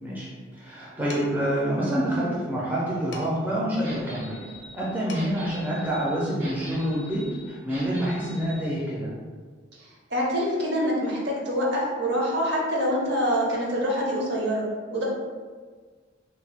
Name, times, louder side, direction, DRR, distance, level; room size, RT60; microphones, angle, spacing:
voice 1, 0.0-4.4 4.7-9.1, equal, 10° right, -7 dB, 0.4 m, -27 dB
Dishes pots and pans, 1.1-1.5 3.1-3.6 4.8-4.9 5.1-5.6, left 3 dB, 60° left, 0.4 m, -43 dB
sound 1, 3.8-8.6, equal, 85° right, 0.9 m, -43 dB
voice 2, 10.1-15.0, equal, 60° right, -3 dB, 0.7 m, -25 dB
2.8 x 2.1 x 3.3 m, 1.6 s
head